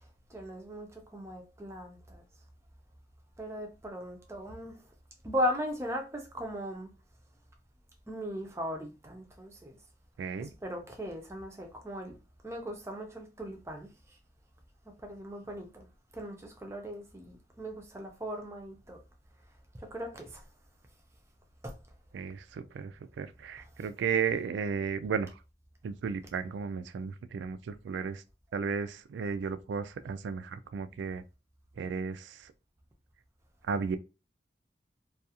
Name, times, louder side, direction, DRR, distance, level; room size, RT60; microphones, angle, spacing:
voice 1, 0.3-2.2 3.4-4.8 5.2-6.9 8.1-9.8 10.4-12.2 12.4-13.9 15.0-15.9 16.1-19.0 19.8-20.4 21.6-21.8 23.6-23.7, equal, 15° right, 0.5 m, -38 dB
voice 2, 10.2-10.5 22.1-25.3 25.8-28.2 28.5-31.2 31.8-32.5 33.7-34.0, right 6 dB, 90° right, 0.3 m, -34 dB
2.4 x 2.3 x 2.8 m
head